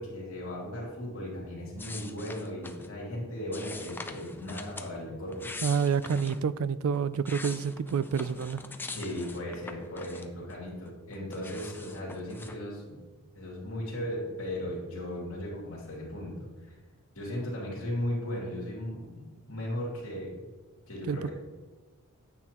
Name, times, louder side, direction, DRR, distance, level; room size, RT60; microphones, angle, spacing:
voice 1, 0.0-5.4 8.9-13.0 13.3-16.5 17.1-20.3 20.9-21.3, left 1 dB, 65° left, -5 dB, 2.8 m, -36 dB
sound 1, 1.8-2.9 3.5-4.9 5.3-6.4 6.9-10.5 10.8-12.6, left 3 dB, 10° left, 0.3 m, -43 dB
voice 2, 5.6-8.6 21.1-21.3, right 6 dB, 65° right, 16 dB, 0.3 m, -28 dB
9.6 x 8.2 x 3.0 m, 1.3 s
head